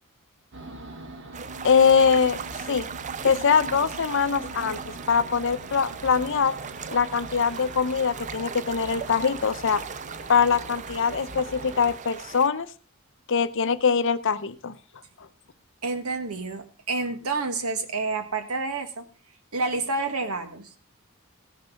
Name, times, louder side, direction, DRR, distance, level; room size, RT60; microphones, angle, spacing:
sound 1, 0.5-12.0, right 2 dB, 55° right, 1.5 m, -41 dB
sound 2, 1.3-12.5, right 6 dB, 35° right, 0.5 m, -39 dB
voice 1, 1.6-2.4 2.7-2.9 3.2-4.8 5.1-6.5 6.9-9.8 10.3-12.7 13.3-14.8, left 6 dB, 60° left, 13 dB, 0.8 m, -22 dB
voice 2, 15.8-19.1 19.5-20.8, right 3 dB, 80° right, 8 dB, 1.7 m, -29 dB
16.0 x 6.7 x 5.7 m, 0.39 s
head